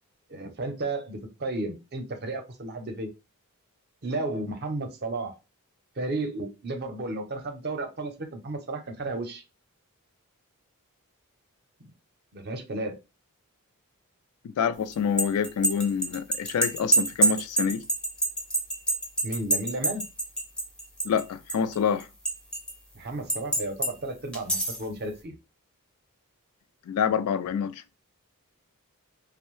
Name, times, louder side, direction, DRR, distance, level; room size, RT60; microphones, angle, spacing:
voice 1, 0.3-3.1 4.0-5.3 6.0-9.4 12.3-13.0 19.2-20.0 22.9-25.3, right 2 dB, 45° right, 0.6 m, -33 dB
voice 2, 14.6-17.8 21.0-22.1 26.9-27.7, left 7 dB, 75° left, 0.3 m, -27 dB
sound 1, 14.9-21.2 21.5-22.7 23.3-23.9 24.3-24.8, right 2 dB, 5° left, 0.5 m, -26 dB
2.6 x 2.0 x 3.0 m
head